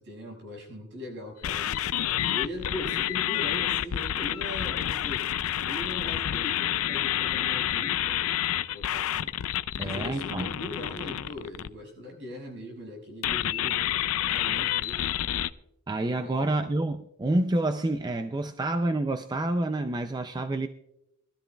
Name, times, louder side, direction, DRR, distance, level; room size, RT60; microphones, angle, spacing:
voice 1, 0.0-1.9 2.3-5.3 5.6-9.3 9.8-13.8 14.2-15.1 16.0-16.6, left 1 dB, 60° right, 5.8 m, -40 dB
sound 1, 1.4-11.7 13.2-15.5, left 11 dB, 70° left, 0.4 m, -29 dB
voice 2, 9.8-10.5 15.9-20.7, right 2 dB, 20° right, 0.4 m, -28 dB
22.5 x 13.0 x 2.3 m
head